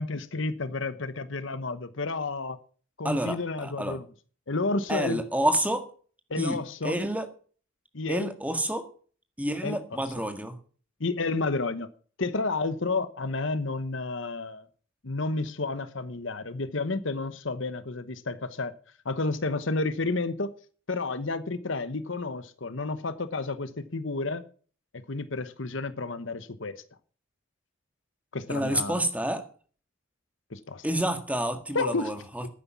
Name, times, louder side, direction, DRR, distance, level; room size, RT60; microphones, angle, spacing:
voice 1, 0.0-2.6 3.0-4.0 4.5-5.2 6.3-7.0 7.9-8.3 9.6-9.8 11.0-11.9 12.2-14.7 15.0-18.7 19.0-20.5 20.9-24.4 24.9-26.7 28.3-29.0 30.5-30.8 31.7-32.1, left 3 dB, 65° left, 1.1 m, -31 dB
voice 2, 3.0-4.0 4.9-5.9 6.4-7.3 8.1-8.9 9.4-10.6 28.5-29.4 30.8-32.5, right 1 dB, 5° right, 1.7 m, -29 dB
12.0 x 9.7 x 6.0 m
head